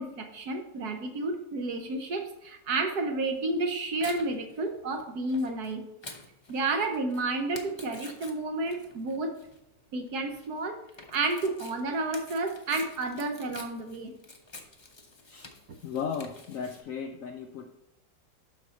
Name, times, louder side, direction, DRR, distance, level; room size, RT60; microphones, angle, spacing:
voice 1, 0.0-5.8 6.5-9.4 9.9-10.8 11.1-14.1, right 2 dB, 65° right, 5 dB, 1.4 m, -31 dB
Tearing, 3.3-16.8, left 3 dB, 45° left, 0.3 m, -49 dB
voice 2, 15.8-17.7, left 6 dB, 70° left, 5 dB, 0.7 m, -35 dB
12.0 x 4.3 x 4.1 m, 0.85 s
omnidirectional pair, 1.9 m